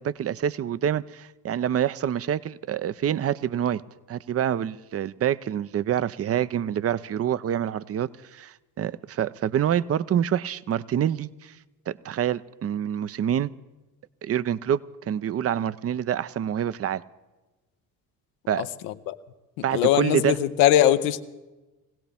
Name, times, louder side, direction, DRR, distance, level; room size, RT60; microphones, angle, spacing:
voice 1, 0.0-3.8 4.1-11.5 11.9-13.5 14.2-14.8 15.1-17.0 18.5-18.7 19.6-20.4, right 9 dB, 30° right, 18 dB, 0.5 m, -26 dB
voice 2, 19.7-21.2, left 12 dB, 80° left, 10 dB, 0.9 m, -21 dB
22.5 x 17.0 x 3.5 m, 1.1 s
hypercardioid pair, 55°, 46 cm